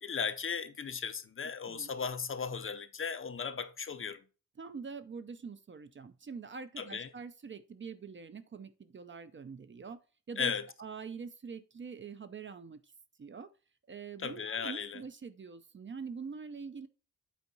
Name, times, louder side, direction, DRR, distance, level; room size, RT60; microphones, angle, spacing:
voice 1, 0.0-4.2 6.8-7.1 10.4-10.7 14.2-15.0, left 6 dB, 35° left, 0.5 m, -36 dB
voice 2, 4.6-10.0 10.3-10.5 10.8-12.8 13.2-13.5 13.9-16.9, right 5 dB, 30° right, 0.5 m, -44 dB
8.4 x 4.5 x 3.9 m
wide cardioid pair, 175°, 37 cm